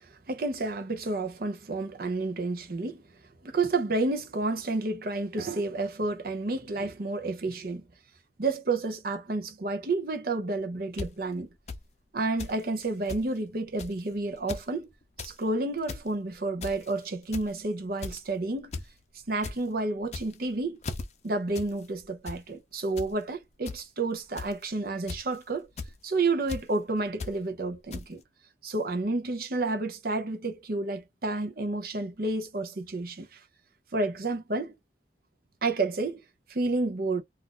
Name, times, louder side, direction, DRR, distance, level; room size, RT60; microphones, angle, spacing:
voice 1, 0.3-3.0 3.4-7.8 8.4-11.5 12.1-14.9 15.2-18.7 19.3-20.8 21.2-25.7 26.0-28.2 28.6-33.3 33.9-34.7 35.6-36.2 36.5-37.2, right 2 dB, 55° right, 0.7 m, -30 dB
sound 1, 11.0-11.1 11.7-11.8 12.4-12.6 12.8-12.9 13.1-13.2 13.8-14.0 14.4-14.6 15.0-15.3 15.7-16.0 16.6-16.9 17.3-17.6 18.0-18.3 18.7-18.9 19.2-19.5 20.0-20.4 20.8-21.0 21.5-21.7 22.0-22.4 23.0-23.1 23.6-23.8 24.4-24.6 25.1-25.3 25.8-25.9 26.5-26.6 27.2-27.3 27.9-28.0, left 4 dB, 40° left, 0.6 m, -37 dB
2.6 x 2.4 x 3.7 m
head